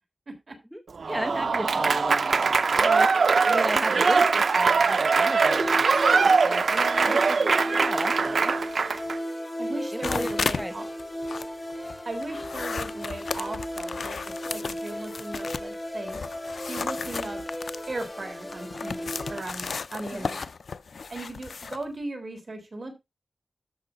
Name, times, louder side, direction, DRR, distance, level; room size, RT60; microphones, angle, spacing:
voice 1, 0.7-3.1 3.4-8.5 9.9-10.3 10.6-10.7 20.1-20.3, equal, ahead, 5 dB, 1.0 m, -35 dB
Applause / Crowd, 1.0-9.2, right 4 dB, 80° right, 0.7 m, -22 dB
sound 1, 5.4-19.4, equal, 20° left, 2.1 m, -35 dB
voice 2, 9.6-10.8 12.0-16.2 16.7-17.4 17.9-20.5 21.1-23.0, right 2 dB, 45° right, 5 dB, 3.7 m, -37 dB
sound 2, 10.0-10.7 11.0-15.8 16.1-21.8, left 5 dB, 85° left, 0.5 m, -34 dB
13.0 x 6.0 x 3.9 m, 0.23 s
wide cardioid pair, 110°, 0 cm